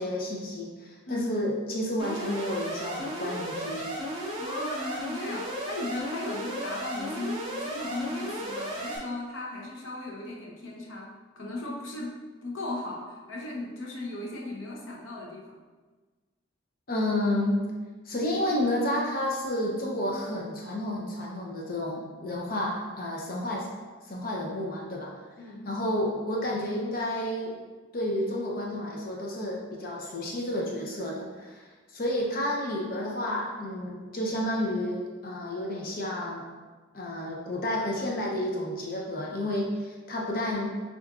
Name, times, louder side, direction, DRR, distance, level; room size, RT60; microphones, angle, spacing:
voice 1, 0.0-3.9 16.9-17.6 18.1-23.7 24.1-25.1 25.6-27.6 27.9-36.5 36.9-40.8, left 1 dB, 45° left, -2 dB, 0.6 m, -31 dB
Alarm, 2.0-9.0, equal, 25° right, 0.7 m, -34 dB
voice 2, 4.4-15.6 25.4-25.7, left 2 dB, 85° left, -1 dB, 0.7 m, -37 dB
6.3 x 2.5 x 2.4 m, 1.3 s
head